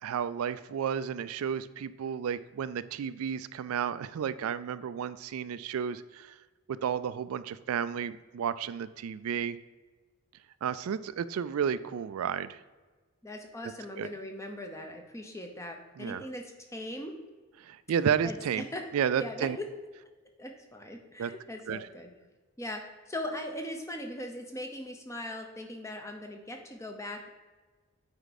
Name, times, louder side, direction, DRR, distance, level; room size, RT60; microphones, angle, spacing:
voice 1, 0.0-6.3 6.7-9.6 10.6-12.6 14.0-14.1 16.0-16.3 17.6-18.6 18.9-19.6 21.2-21.3 21.7-21.8, right 8 dB, 80° right, 15 dB, 0.3 m, -32 dB
voice 2, 13.2-17.2 18.2-18.9 19.1-19.7 20.4-22.1 22.6-27.3, left 1 dB, 15° left, 3 dB, 0.7 m, -40 dB
8.0 x 4.6 x 4.1 m, 1.3 s
head